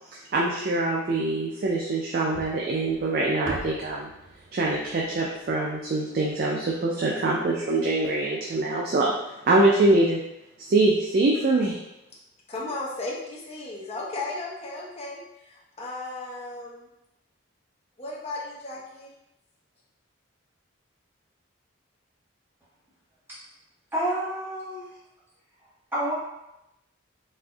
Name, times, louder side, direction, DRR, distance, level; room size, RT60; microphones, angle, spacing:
voice 1, 0.1-4.1 4.5-10.2 10.6-11.8, right 2 dB, 45° right, -3 dB, 0.4 m, -24 dB
sound 1, 2.3-6.6, right 3 dB, 85° right, 0.6 m, -40 dB
voice 2, 12.5-15.2 15.8-16.9 18.0-19.1, left 2 dB, 30° left, -5 dB, 0.6 m, -35 dB
voice 3, 23.9-24.9 25.9-26.1, right 1 dB, 10° right, -10 dB, 1.1 m, -28 dB
4.2 x 2.5 x 2.3 m, 0.90 s
head